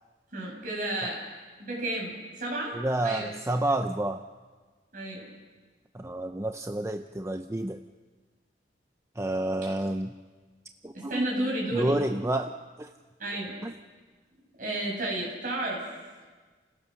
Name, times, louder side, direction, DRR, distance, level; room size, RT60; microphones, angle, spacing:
voice 1, 0.3-1.2 1.6-2.7 3.0-3.3 4.9-5.3 10.9-12.0 13.2-13.5 14.6-15.8, right 1 dB, 50° right, -2 dB, 7.5 m, -32 dB
voice 2, 2.8-4.2 6.0-7.8 9.2-10.1 10.8-11.3 11.8-12.5 12.8-12.9 13.6-13.7, right 1 dB, 15° right, 6 dB, 0.6 m, -29 dB
29.5 x 16.5 x 6.5 m, 1.4 s
head